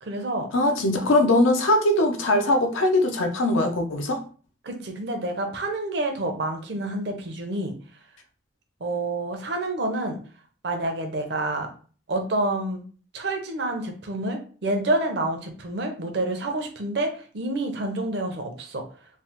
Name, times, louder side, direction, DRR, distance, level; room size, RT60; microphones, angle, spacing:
voice 1, 0.0-0.5 4.6-7.7 8.8-10.2 10.6-11.7 12.1-12.8 13.1-18.8, right 2 dB, 60° right, 0.6 m, -28 dB
voice 2, 0.5-4.2, left 1 dB, 85° left, 0.5 m, -21 dB
3.1 x 2.0 x 2.9 m
head